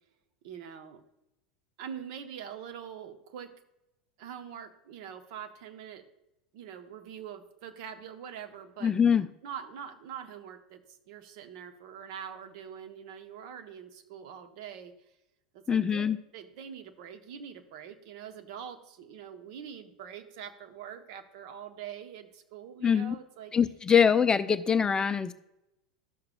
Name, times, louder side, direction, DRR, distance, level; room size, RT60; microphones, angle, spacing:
voice 1, 0.4-1.0 1.8-3.5 4.2-6.1 6.5-8.9 9.4-15.2 15.5-23.5, right 8 dB, 55° right, 7 dB, 0.9 m, -44 dB
voice 2, 8.8-9.3 15.7-16.2 22.8-23.1 23.5-25.3, left 7 dB, 20° left, 12 dB, 0.4 m, -23 dB
12.5 x 6.8 x 2.2 m, 0.89 s
figure-of-eight pair, 80°, 4 cm